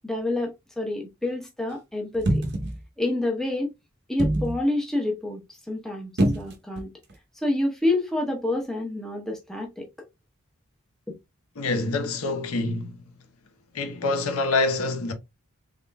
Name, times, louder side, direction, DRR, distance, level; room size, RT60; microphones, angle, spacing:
voice 1, 0.0-2.4 3.0-3.7 4.1-6.9 7.4-9.9 11.1-11.2, left 2 dB, ahead, 0.8 m, -28 dB
sound 1, 2.1-2.8 4.2-4.6 6.2-6.8 7.1-7.2, right 1 dB, 50° right, 0.8 m, -24 dB
voice 2, 11.6-13.0 13.7-15.1, left 3 dB, 80° left, 0.8 m, -26 dB
3.6 x 3.6 x 2.2 m
head